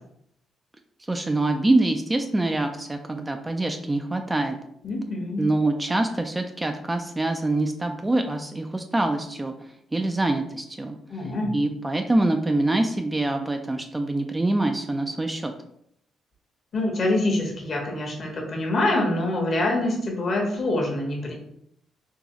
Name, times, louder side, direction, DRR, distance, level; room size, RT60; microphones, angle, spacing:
voice 1, 1.1-4.6 5.4-9.5 9.9-11.0 11.5-15.5, right 2 dB, 15° right, 5 dB, 0.4 m, -25 dB
voice 2, 4.8-5.4 11.1-11.5 16.7-21.3, left 2 dB, 50° left, 1 dB, 1.1 m, -25 dB
3.8 x 3.0 x 3.0 m, 0.73 s
cardioid pair, 90°, 0 cm